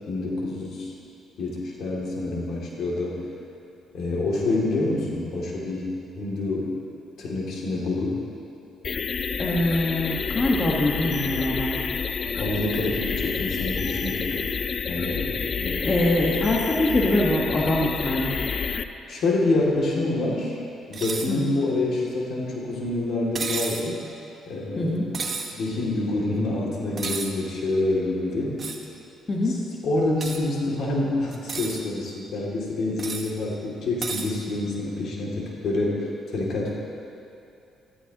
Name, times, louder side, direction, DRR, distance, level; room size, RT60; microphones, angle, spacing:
voice 1, 0.1-0.9 1.4-3.3 3.9-6.7 7.2-8.2 12.4-14.5 14.9-15.9 19.1-20.6 20.9-24.0 24.5-25.2 25.5-28.6 29.8-36.0 36.3-36.7, left 2 dB, 70° left, -3 dB, 2.6 m, -27 dB
sound 1, 8.8-18.8, left 5 dB, 50° left, 0.5 m, -29 dB
voice 2, 9.4-11.8 15.8-18.4 21.3-21.5 24.8-25.1 29.3-29.6, left 1 dB, 30° left, -3 dB, 1.4 m, -24 dB
sound 2, 20.9-21.3 23.3-23.9 25.1-25.5 27.0-27.3 28.6-28.8 30.2-30.4 31.3-31.8 33.0-33.3 34.0-34.3, right 4 dB, 45° right, 1.1 m, -31 dB
13.5 x 13.5 x 3.0 m, 2.8 s
cardioid pair, 90°, 0 cm